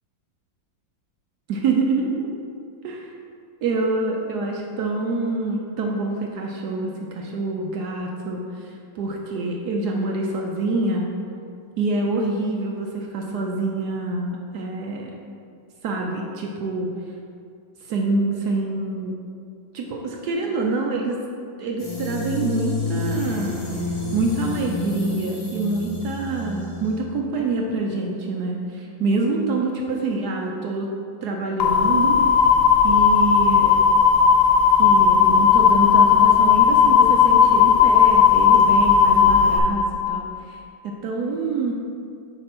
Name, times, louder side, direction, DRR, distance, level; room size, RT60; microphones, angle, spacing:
voice 1, 1.5-2.3 2.8-3.1 3.6-11.1 11.8-15.1 15.8-16.9 17.8-19.1 19.7-21.2 21.6-23.6 24.1-30.9 31.2-32.2 32.8-33.8 34.8-40.6 40.8-41.7, right 3 dB, 70° right, 0 dB, 1.1 m, -26 dB
sound 1, 21.8-27.0, left 3 dB, 55° left, 1.7 m, -29 dB
sound 2, 31.6-39.6, left 7 dB, 75° left, 0.8 m, -15 dB
5.3 x 4.4 x 5.8 m, 2.3 s
omnidirectional pair, 2.1 m